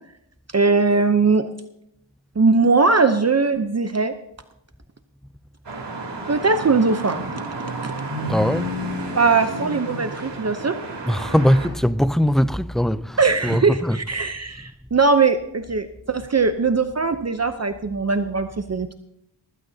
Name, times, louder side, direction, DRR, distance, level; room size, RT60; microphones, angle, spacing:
voice 1, 0.5-1.5 2.4-4.1 6.3-7.2 7.8-7.9 9.1-10.8 13.2-18.9, right 4 dB, 35° right, 0.8 m, -20 dB
sound 1, 5.6-11.7, right 1 dB, 75° right, 3.5 m, -31 dB
voice 2, 8.3-8.8 11.0-14.2, equal, ahead, 0.4 m, -21 dB
20.0 x 15.0 x 2.8 m
wide cardioid pair, 85°, 42 cm